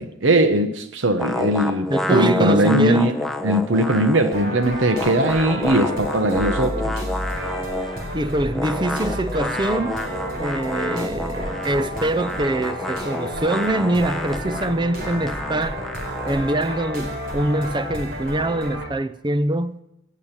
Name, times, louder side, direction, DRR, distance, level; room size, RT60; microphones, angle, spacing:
voice 1, 0.0-3.1 3.4-7.0, right 1 dB, 65° right, 1.1 m, -20 dB
sound 1, 1.2-4.5 4.7-8.0 8.5-16.6, left 1 dB, ahead, 0.9 m, -29 dB
voice 2, 1.9-3.1 8.1-10.0 10.4-15.8 16.2-19.8, right 1 dB, 20° right, 0.5 m, -24 dB
sound 2, 4.3-18.9, equal, 50° right, 4.2 m, -31 dB
18.0 x 6.6 x 9.7 m
head